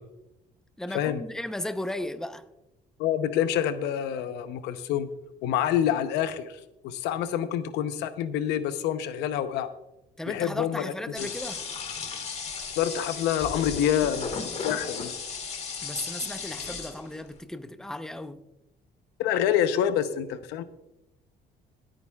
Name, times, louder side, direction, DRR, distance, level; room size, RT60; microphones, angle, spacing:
voice 1, 0.8-2.4 10.2-11.6 15.8-18.4, left 1 dB, 5° left, 0.7 m, -35 dB
voice 2, 3.0-5.1 5.4-9.7 10.3-11.3 12.8-14.4 14.6-15.1 19.2-20.6, left 10 dB, 90° left, 0.8 m, -27 dB
sound 1, 11.1-17.3, left 5 dB, 40° left, 1.7 m, -35 dB
26.0 x 8.9 x 2.4 m
cardioid pair, 110°, 17 cm